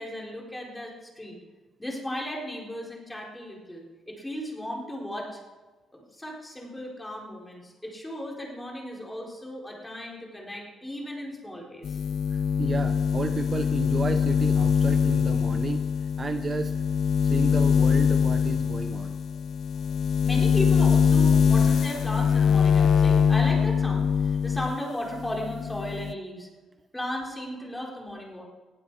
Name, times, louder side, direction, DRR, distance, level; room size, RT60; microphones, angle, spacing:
voice 1, 0.0-1.4 1.8-5.4 5.9-12.0 20.2-26.5 26.9-28.4, equal, 10° left, -2 dB, 4.3 m, -36 dB
sound 1, 11.8-24.8 25.1-26.1, left 7 dB, 55° left, 0.4 m, -23 dB
voice 2, 12.3-15.8 16.2-16.7 17.2-19.2, right 4 dB, 30° right, 8 dB, 0.7 m, -32 dB
20.0 x 15.0 x 4.8 m, 1.3 s
cardioid pair, 130°, 0 cm